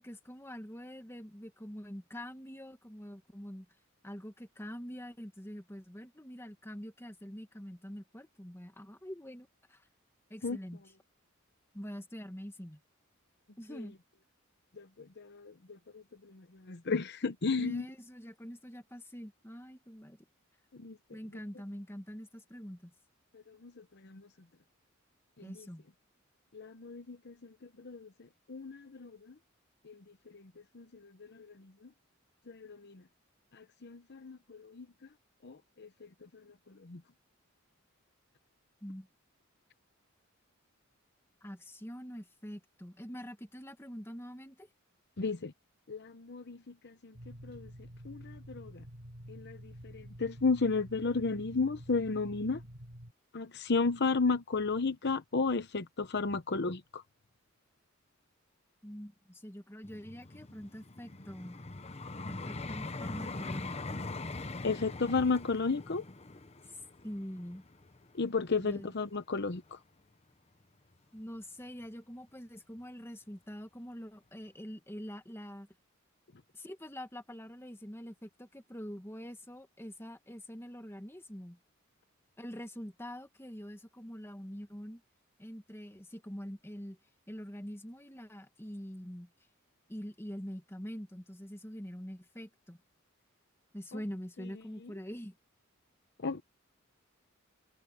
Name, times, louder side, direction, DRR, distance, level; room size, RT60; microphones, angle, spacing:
voice 1, 0.0-3.7 4.0-9.8 10.3-10.8 11.7-12.8 13.6-13.9 17.6-20.2 21.1-22.9 25.4-25.8 38.8-39.1 41.4-44.7 58.8-61.6 62.3-64.0 66.7-67.6 68.6-69.0 71.1-75.7 76.5-81.6 82.4-85.0 85.4-87.0 87.3-89.3 89.9-92.8 93.7-95.4, equal, 10° left, 2.0 m, -45 dB
voice 2, 14.8-15.5 15.9-16.0 16.7-17.8 20.8-21.0 23.3-23.7 24.0-24.3 25.4-25.7 26.5-27.3 27.8-28.1 28.5-29.1 29.9-30.0 30.3-30.4 30.7-31.5 32.5-33.0 33.5-34.9 35.4-35.9 36.8-37.0 45.2-45.5 45.9-47.1 47.4-47.7 48.0-48.8 49.3-52.6 53.3-57.0 64.6-66.0 68.2-69.8 96.2-96.4, left 4 dB, 55° left, 0.9 m, -33 dB
sound 1, 47.1-53.1, equal, 55° right, 5.4 m, -49 dB
Vehicle, 59.8-68.9 69.5-69.7, left 2 dB, 30° left, 0.9 m, -42 dB
head